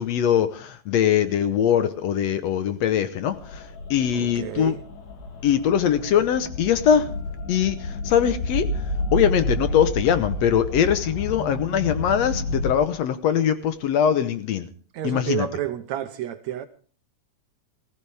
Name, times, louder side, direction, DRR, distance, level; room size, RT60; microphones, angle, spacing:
voice 1, 0.0-4.8 5.4-7.1 7.5-8.7 9.1-14.7 15.0-15.5, left 9 dB, 70° left, 2.0 m, -22 dB
sound 1, 3.3-12.7, left 1 dB, 85° left, 3.8 m, -30 dB
voice 2, 4.1-4.8 14.9-16.7, right 12 dB, 75° right, 2.0 m, -30 dB
19.5 x 15.5 x 3.4 m
omnidirectional pair, 3.4 m